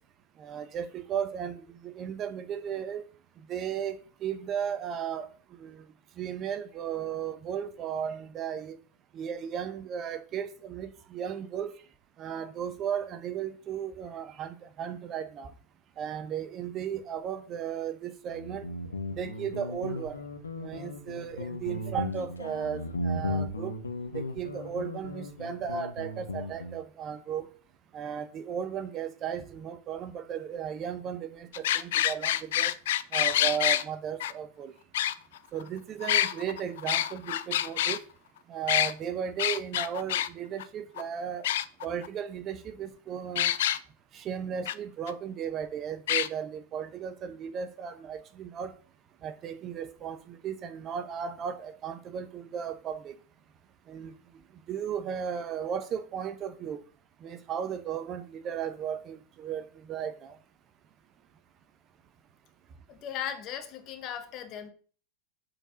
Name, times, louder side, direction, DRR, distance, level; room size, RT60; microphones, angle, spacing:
voice 1, 0.4-3.0 3.5-5.3 5.6-5.9 6.2-8.8 9.1-11.7 12.2-15.5 16.0-18.7 19.2-20.2 20.6-23.7 24.1-27.5 27.9-32.7 33.1-34.7 35.5-38.0 38.5-41.5 41.8-43.5 44.1-48.7 49.2-53.1 53.9-54.1 54.7-56.8 57.2-60.4, right 8 dB, 30° right, 0.8 m, -35 dB
Guitar, 18.3-26.8, left 2 dB, 75° left, 1.0 m, -36 dB
sound 1, 31.5-33.8 34.2-34.3 34.9-35.6 36.0-38.0 38.7-38.9 39.4-40.3 40.6-40.7 41.0-41.1 41.4-42.1 43.4-43.8 44.7-44.8 45.1-45.2 46.1-46.3, left 12 dB, 55° left, 0.5 m, -27 dB
voice 2, 62.9-64.7, left 9 dB, 35° left, 1.4 m, -37 dB
7.8 x 4.4 x 6.2 m
figure-of-eight pair, 90°, 0 cm